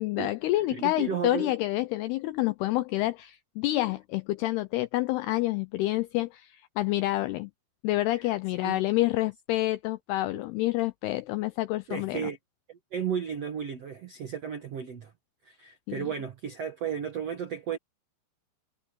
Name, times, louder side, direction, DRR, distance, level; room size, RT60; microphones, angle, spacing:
voice 1, 0.0-7.5 7.8-12.3 15.9-16.1, left 17 dB, 85° left, 2.3 m, -28 dB
voice 2, 0.7-1.5 8.6-8.8 10.3-10.4 11.9-12.4 12.9-15.1 15.4-17.8, right 7 dB, 70° right, 1.5 m, -34 dB
omnidirectional pair, 5.3 m